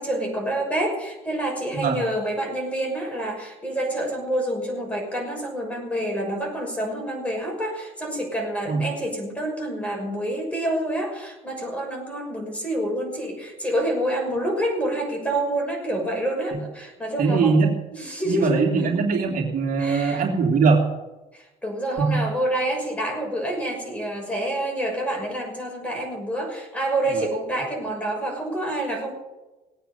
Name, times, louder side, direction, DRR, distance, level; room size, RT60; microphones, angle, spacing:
voice 1, 0.0-17.6 17.9-18.9 19.8-20.2 21.3-29.1, right 1 dB, 5° left, 1 dB, 6.3 m, -27 dB
voice 2, 17.2-17.8 18.3-20.9 22.0-22.2 27.1-27.3, right 4 dB, 55° right, 0 dB, 3.0 m, -21 dB
19.0 x 9.3 x 7.1 m, 1.1 s
cardioid pair, 110°, 17 cm